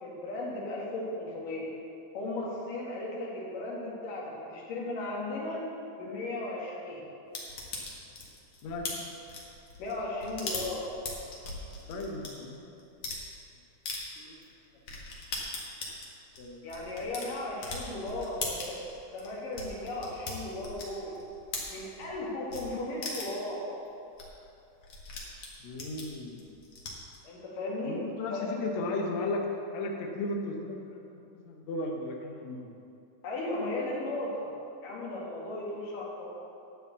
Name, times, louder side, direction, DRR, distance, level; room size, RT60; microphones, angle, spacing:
voice 1, 0.0-1.7 2.1-5.6 6.0-7.1 9.8-10.9 16.6-18.8 19.1-21.2 21.7-23.7 27.2-28.5 33.2-34.5 34.8-36.3, left 2 dB, 85° left, -4 dB, 3.6 m, -36 dB
sound 1, 7.3-12.3 12.8-13.2 13.9-14.0 14.4-14.5 14.9-22.2 22.5-22.6 23.0-23.5 23.9-24.0 24.2-24.3 24.5-27.2, left 3 dB, 50° left, 2.4 m, -39 dB
voice 2, 8.6-9.1 11.9-12.9 14.3-14.4 16.4-16.7 25.6-26.5 27.9-31.0 31.5-32.7, left 2 dB, 65° left, 1 dB, 2.0 m, -35 dB
13.0 x 5.0 x 8.2 m, 2.7 s
omnidirectional pair, 3.7 m